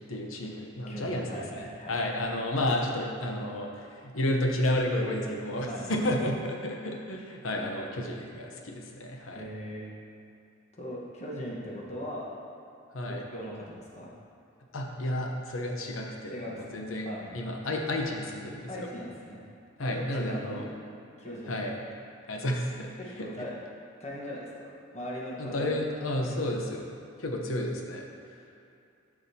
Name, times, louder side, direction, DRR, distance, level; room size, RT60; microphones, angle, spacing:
voice 1, 0.1-9.5 12.9-13.2 14.7-17.1 17.3-18.9 19.8-20.7 21.5-21.9 22.3-22.9 23.2-23.5 25.4-28.4, left 1 dB, 80° left, 1 dB, 0.9 m, -32 dB
voice 2, 0.9-2.1 5.7-5.9 9.3-9.9 10.8-12.3 13.1-14.1 16.3-17.3 18.7-19.4 19.8-20.7 21.2-21.6 23.0-23.5 24.0-25.8 26.3-26.5, equal, 35° left, -5 dB, 1.2 m, -39 dB
11.5 x 4.9 x 2.8 m, 2.6 s
head